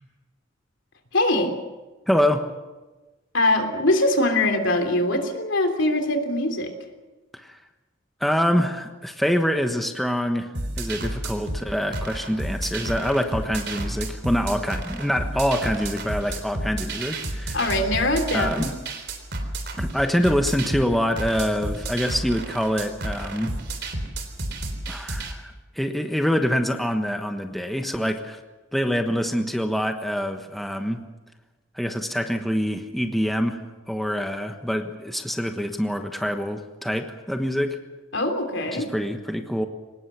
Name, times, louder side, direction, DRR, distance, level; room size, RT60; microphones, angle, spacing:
voice 1, 1.1-1.5 3.3-6.7 17.5-18.7 38.1-38.9, left 1 dB, 70° left, 5 dB, 3.4 m, -22 dB
voice 2, 2.1-2.5 7.3-7.6 8.2-17.6 18.3-18.7 19.8-23.5 24.9-28.4 28.7-31.0 31.8-37.8 38.7-39.7, equal, ahead, 5 dB, 1.2 m, -25 dB
sound 1, 10.5-25.3, right 1 dB, 60° right, 3.8 m, -31 dB
24.5 x 19.5 x 7.0 m, 1.2 s
head